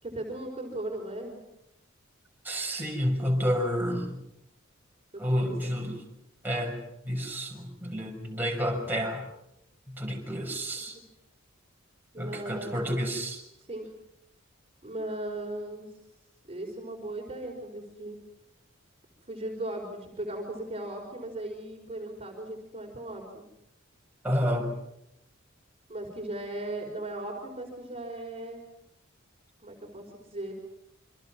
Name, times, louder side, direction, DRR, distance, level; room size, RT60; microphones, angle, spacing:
voice 1, 0.0-1.4 5.1-5.7 12.1-12.9 13.6-13.9 14.8-15.9 16.4-18.2 19.3-23.4 25.9-28.6 29.6-30.5, right 1 dB, 30° right, 0 dB, 5.1 m, -37 dB
voice 2, 2.4-4.2 5.2-6.0 6.4-6.8 7.0-9.2 9.9-11.0 12.2-13.4 24.2-24.7, equal, 10° right, -1 dB, 6.3 m, -30 dB
28.5 x 26.5 x 6.2 m, 0.83 s
head